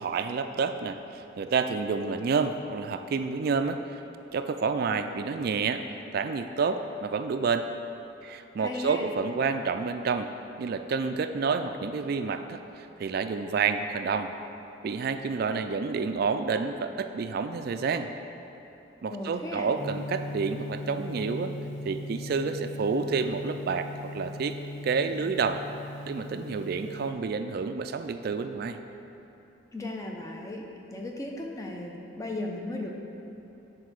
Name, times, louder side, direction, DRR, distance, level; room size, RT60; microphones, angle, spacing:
voice 1, 0.0-4.0 4.3-5.8 6.1-7.7 8.2-10.3 10.6-14.3 14.8-18.1 19.0-21.5 21.9-24.6 24.8-25.6 26.1-28.8, right 5 dB, 50° right, 8 dB, 0.3 m, -29 dB
voice 2, 8.6-9.1 19.1-19.7 29.7-30.6 30.9-32.9, left 2 dB, 15° left, 0 dB, 0.7 m, -36 dB
Gong, 19.7-27.1, left 1 dB, 35° left, 1.0 m, -39 dB
8.5 x 4.5 x 6.2 m, 3.0 s
head